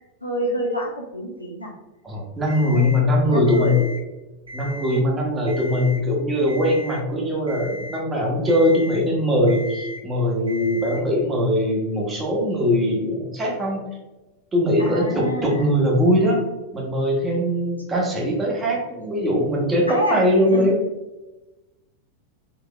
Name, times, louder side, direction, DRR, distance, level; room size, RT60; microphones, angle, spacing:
voice 1, 0.2-1.7 2.6-2.9 3.3-3.8 14.8-15.7 19.9-20.7, equal, 85° left, -1 dB, 0.6 m, -28 dB
voice 2, 2.0-3.8 4.5-13.8 14.5-16.4 16.7-20.8, left 1 dB, 20° right, -2 dB, 1.0 m, -21 dB
Alarm, 2.5-3.0 3.5-4.0 4.4-5.0 5.5-6.0 6.5-7.0 7.5-8.0 8.5-9.0 9.5-10.0 10.5-11.0, left 2 dB, 75° right, 1.3 m, -37 dB
3.8 x 2.8 x 2.2 m, 1.1 s
figure-of-eight pair, 90°, 0 cm